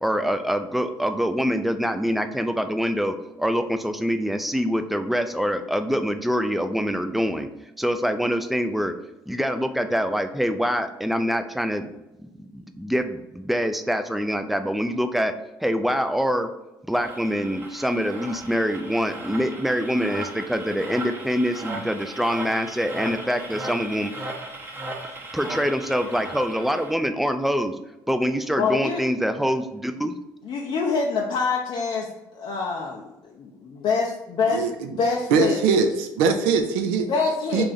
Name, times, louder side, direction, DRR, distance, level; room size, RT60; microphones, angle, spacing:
voice 1, 0.0-7.5 7.8-8.9 9.3-11.9 12.5-15.3 15.6-16.5 16.9-24.1 25.3-27.8 28.1-30.1, equal, ahead, 8 dB, 0.4 m, -25 dB
sound 1, 16.9-26.9, right 2 dB, 20° right, 0.8 m, -37 dB
voice 2, 28.6-29.0 30.5-32.1 32.3-33.1 33.4-34.1 34.4-34.6 35.0-35.6 37.1-37.6, left 4 dB, 55° left, -1 dB, 0.5 m, -25 dB
voice 3, 35.3-37.1 37.5-37.6, right 5 dB, 80° right, 6 dB, 0.4 m, -21 dB
3.2 x 2.5 x 3.8 m, 0.95 s
hypercardioid pair, 60°, 10 cm